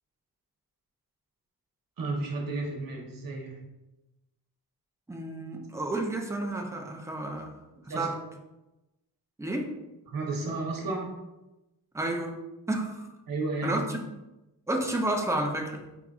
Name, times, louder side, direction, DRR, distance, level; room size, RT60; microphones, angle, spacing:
voice 1, 2.0-3.6 7.9-8.1 10.1-11.1 13.3-13.8, right 3 dB, 55° right, -1 dB, 1.0 m, -32 dB
voice 2, 5.1-7.6 8.0-8.2 9.4-9.7 11.9-12.4 12.7-13.1 13.6-14.2 14.7-15.9, right 1 dB, 10° right, 2 dB, 0.4 m, -31 dB
4.7 x 3.9 x 2.4 m, 1.0 s
wide cardioid pair, 155°, 40 cm